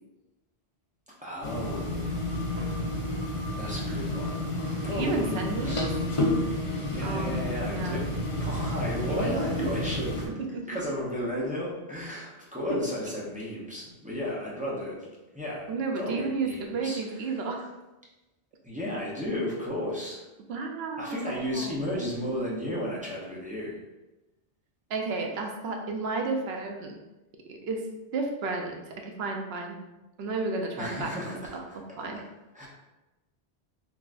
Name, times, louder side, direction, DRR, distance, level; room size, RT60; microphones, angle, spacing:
voice 1, 1.2-2.2 3.6-4.5 4.8-5.9 6.4-6.5 6.9-10.1 10.7-15.1 15.3-15.7 16.0-17.4 18.6-20.3 21.0-23.8 30.8-31.8 32.1-32.2 32.5-32.7, left 1 dB, 10° right, -6 dB, 0.6 m, -34 dB
sound 1, 1.4-10.3, left 1 dB, 40° left, 0.6 m, -30 dB
voice 2, 4.9-5.9 7.0-7.3 7.7-8.0 9.0-9.7 10.3-10.8 15.7-17.7 20.5-21.9 24.9-26.9 27.5-27.9 28.1-29.8 30.2-31.6 32.0-32.2, right 3 dB, 75° right, 2 dB, 0.8 m, -32 dB
3.7 x 2.8 x 2.4 m, 1.0 s
omnidirectional pair, 1.1 m